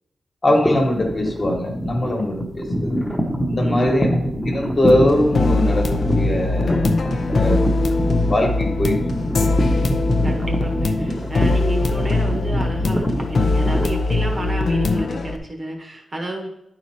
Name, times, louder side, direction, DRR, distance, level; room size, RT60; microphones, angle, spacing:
voice 1, 0.4-2.9 3.4-4.1 4.4-6.9 7.3-7.7 8.3-9.0, left 1 dB, 30° left, 1 dB, 1.4 m, -21 dB
sound 1, 0.6-14.7, equal, 5° left, 1.0 m, -25 dB
voice 2, 3.6-4.1 10.2-16.5, right 1 dB, 25° right, 2 dB, 0.9 m, -30 dB
sound 2, 4.9-15.4, left 2 dB, 50° left, 0.6 m, -21 dB
10.5 x 4.7 x 4.3 m, 0.82 s
wide cardioid pair, 180°, 0 cm